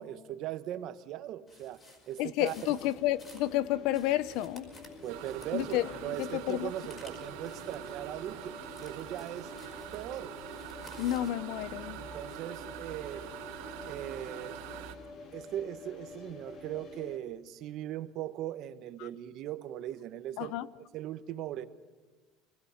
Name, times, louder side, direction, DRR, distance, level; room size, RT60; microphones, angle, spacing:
voice 1, 0.0-1.8 2.1-2.5 5.0-9.5 9.9-10.3 11.9-13.3 13.9-14.6 15.3-20.5 20.9-21.7, right 12 dB, 50° right, 1.1 m, -39 dB
sound 1, 1.5-11.4, left 2 dB, 25° left, 4.7 m, -56 dB
voice 2, 2.2-4.7 5.5-6.7 11.0-12.0 19.0-19.1 20.4-20.7, left 14 dB, 60° left, 0.7 m, -31 dB
sound 2, 2.5-17.2, left 3 dB, 40° left, 2.2 m, -49 dB
sound 3, 5.1-15.0, right 11 dB, 75° right, 2.3 m, -44 dB
25.0 x 19.5 x 5.8 m
cardioid pair, 145°, 0 cm